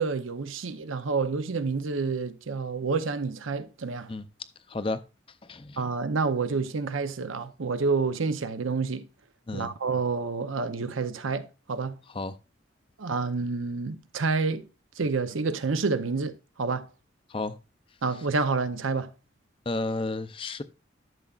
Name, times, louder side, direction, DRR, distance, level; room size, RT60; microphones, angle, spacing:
voice 1, 0.0-4.1 5.8-9.1 9.5-12.0 13.0-14.7 15.0-16.9 18.0-19.1, right 4 dB, 85° right, 0.7 m, -28 dB
voice 2, 4.7-5.0 5.4-5.8 9.5-9.7 12.1-12.4 17.3-17.6 18.1-18.2 19.7-20.6, left 2 dB, 25° left, 0.5 m, -32 dB
12.0 x 6.9 x 2.4 m
head